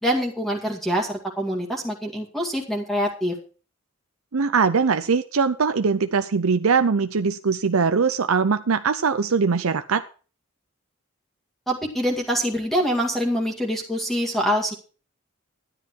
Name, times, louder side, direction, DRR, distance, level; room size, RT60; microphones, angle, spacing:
voice 1, 0.0-3.4 11.7-14.7, equal, ahead, 0 dB, 2.1 m, -25 dB
voice 2, 4.3-10.0, right 5 dB, 85° right, 10 dB, 0.7 m, -21 dB
12.5 x 10.5 x 4.6 m, 0.37 s
head